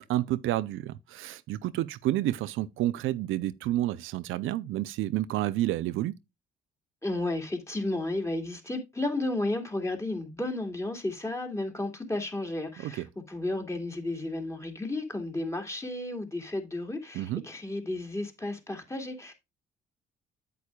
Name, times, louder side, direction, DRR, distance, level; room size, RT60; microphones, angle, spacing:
voice 1, 0.0-6.1 12.8-13.1 17.1-17.4, right 14 dB, 85° right, 0.5 m, -30 dB
voice 2, 7.0-19.3, left 2 dB, 15° left, 2.4 m, -33 dB
8.5 x 8.3 x 2.3 m
cardioid pair, 90°, 20 cm